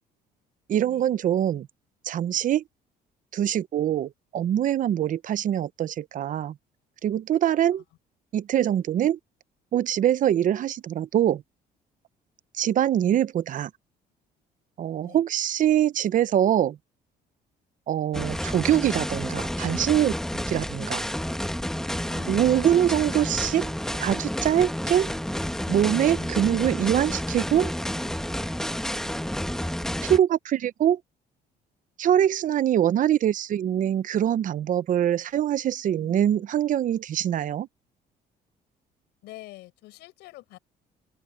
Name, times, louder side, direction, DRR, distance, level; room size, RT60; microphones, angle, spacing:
voice 1, 0.7-1.7 2.0-2.6 3.3-6.6 7.0-7.8 8.3-9.2 9.7-11.4 12.5-13.7 14.8-16.8 17.9-20.1 20.5-21.0 22.3-23.7 24.0-25.1 25.7-27.7 30.0-31.0 32.0-37.7, right 10 dB, 50° right, 0.8 m, -23 dB
sound 1, 18.1-30.2, equal, 5° left, 1.3 m, -30 dB
voice 2, 22.1-22.9 26.1-26.3 35.9-36.4 39.2-40.6, left 18 dB, 90° left, 6.7 m, -46 dB
open air
cardioid pair, 110°, 17 cm